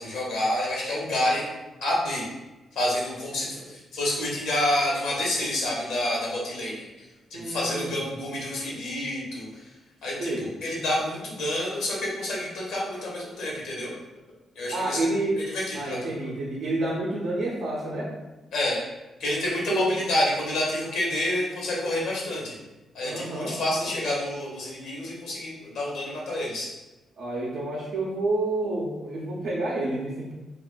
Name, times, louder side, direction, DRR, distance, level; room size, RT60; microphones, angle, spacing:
voice 1, 0.0-1.5 1.8-2.3 2.7-7.1 7.3-9.7 10.0-13.9 14.5-15.1 15.4-16.1 18.5-18.8 19.2-22.6 22.9-26.7, left 1 dB, 90° left, -4 dB, 1.0 m, -28 dB
voice 2, 7.3-8.0 10.2-10.5 14.7-15.4 15.7-18.1 19.7-19.9 23.0-23.9 27.2-30.3, right 2 dB, 80° right, -5 dB, 0.5 m, -29 dB
2.4 x 2.4 x 3.7 m, 1.1 s
cardioid pair, 80°, 0 cm